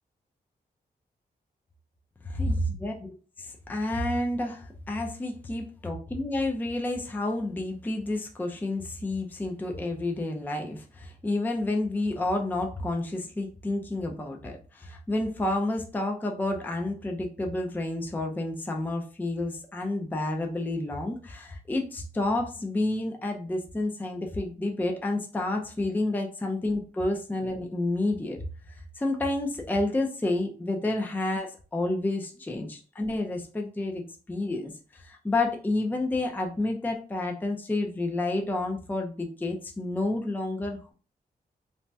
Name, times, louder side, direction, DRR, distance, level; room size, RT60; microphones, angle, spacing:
voice 1, 2.2-3.1 3.4-40.9, left 2 dB, 10° left, 2 dB, 0.4 m, -30 dB
2.6 x 2.1 x 3.2 m, 0.38 s
wide cardioid pair, 115°, 17 cm